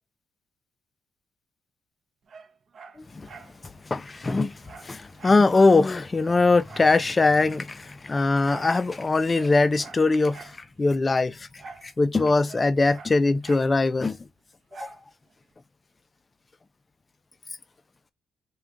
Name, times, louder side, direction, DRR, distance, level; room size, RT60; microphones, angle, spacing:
Dog, 2.3-3.6 3.9-4.0 4.2-5.5 5.8-5.9 6.2-7.5 8.5-8.8 9.3-10.6 11.6-11.9 12.2-13.7 14.7-15.0 15.5-15.6, right 4 dB, 50° right, 0.6 m, -46 dB
voice 1, 3.9-4.5 4.8-10.5 10.8-11.5 11.8-14.2 14.8-14.9, left 3 dB, 25° left, 0.3 m, -21 dB
2.3 x 2.2 x 3.7 m
cardioid pair, 90°, 0 cm